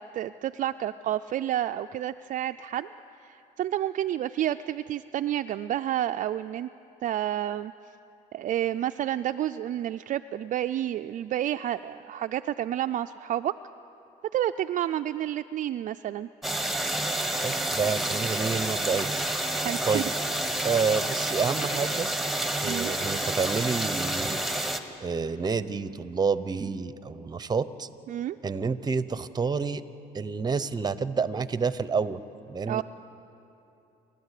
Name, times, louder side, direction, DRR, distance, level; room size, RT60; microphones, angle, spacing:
voice 1, 0.0-2.9 3.2-6.7 7.0-7.7 8.3-13.5 14.3-16.3 19.6-20.0 22.6-22.9 28.1-28.4 32.7-32.8, right 12 dB, 50° right, 9 dB, 0.4 m, -30 dB
sound 1, 16.4-24.8, right 1 dB, ahead, 1.3 m, -29 dB
voice 2, 17.4-19.1 19.8-20.1 20.6-22.1 22.6-24.4 25.0-27.9 28.4-29.8 30.1-32.2 32.5-32.8, right 5 dB, 25° right, 14 dB, 0.8 m, -29 dB
28.5 x 12.5 x 8.3 m, 2.9 s
cardioid pair, 110°, 17 cm